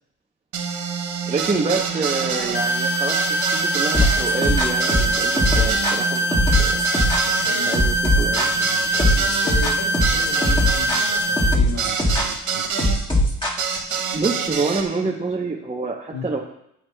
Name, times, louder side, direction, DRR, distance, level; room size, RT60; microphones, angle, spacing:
sound 1, 0.5-13.0 13.6-14.8, right 6 dB, 75° right, 1.2 m, -27 dB
voice 1, 1.3-6.8 7.5-8.5 14.1-16.4, right 3 dB, 20° right, 0 dB, 0.7 m, -27 dB
sound 2, 2.5-11.5, right 1 dB, 35° left, 0.4 m, -23 dB
sound 3, 3.9-14.0, left 1 dB, 15° left, 1.7 m, -20 dB
voice 2, 7.2-12.7 16.1-16.3, left 3 dB, 90° left, -1 dB, 2.1 m, -35 dB
9.6 x 7.4 x 2.2 m, 0.78 s
cardioid pair, 90°, 30 cm